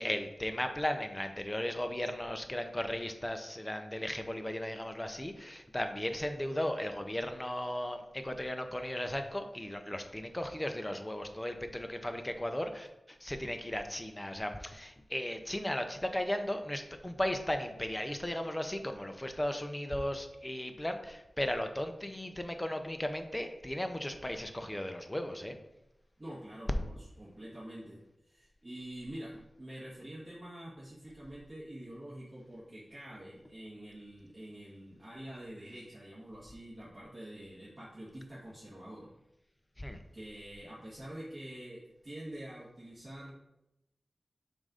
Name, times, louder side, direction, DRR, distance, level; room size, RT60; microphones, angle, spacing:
voice 1, 0.0-25.6 39.8-40.0, left 1 dB, 15° left, 6 dB, 0.6 m, -36 dB
voice 2, 26.2-29.3 29.6-39.1 40.1-43.3, right 1 dB, 30° right, -9 dB, 1.6 m, -46 dB
7.3 x 2.6 x 4.9 m, 0.88 s
wide cardioid pair, 95°, 0 cm